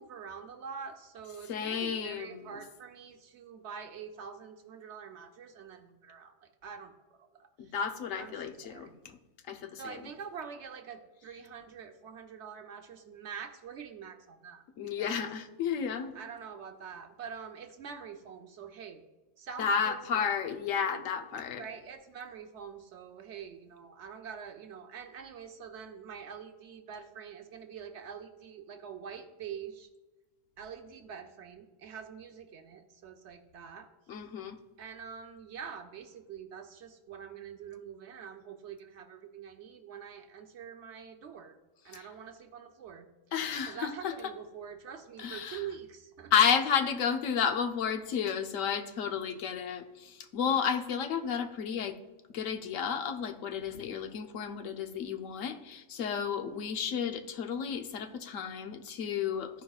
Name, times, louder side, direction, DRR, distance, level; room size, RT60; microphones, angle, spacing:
voice 1, 0.0-7.7 8.1-9.0 9.8-14.6 15.0-15.3 16.1-19.0 19.4-20.2 21.6-29.9 30.6-33.9 34.8-41.6 41.8-43.1 43.7-46.3, right 7 dB, 65° right, 6 dB, 1.0 m, -45 dB
voice 2, 1.5-2.6 7.6-9.2 9.5-10.0 14.8-16.1 19.6-21.6 34.1-34.6 41.9-42.1 43.3-44.1 45.2-45.6 46.3-52.0 52.3-59.6, left 7 dB, 90° left, 8 dB, 1.1 m, -32 dB
13.5 x 5.1 x 2.4 m, 1.1 s
omnidirectional pair, 1.3 m